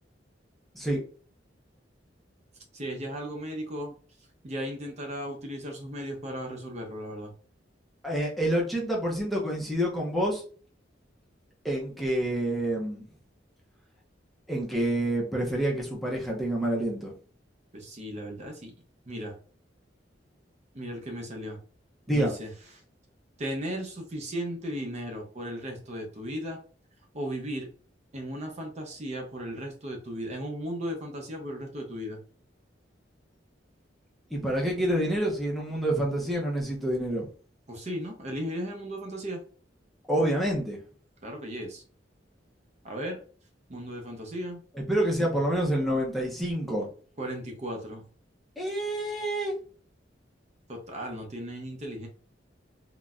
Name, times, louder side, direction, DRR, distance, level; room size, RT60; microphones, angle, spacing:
voice 1, 2.7-3.9 4.4-7.3 17.7-18.7 19.1-19.3 20.7-21.6 22.1-22.5 23.4-26.6 27.1-27.7 28.1-32.2 37.7-39.4 41.2-41.8 42.8-43.2 43.7-44.6 47.2-48.0 50.7-52.1, equal, 40° right, 2 dB, 0.6 m, -36 dB
voice 2, 8.0-10.4 11.6-13.0 14.5-17.1 22.1-22.3 34.3-37.2 40.1-40.8 44.9-46.9 48.6-49.5, right 1 dB, ahead, -3 dB, 0.6 m, -27 dB
3.8 x 2.1 x 2.4 m, 0.42 s
head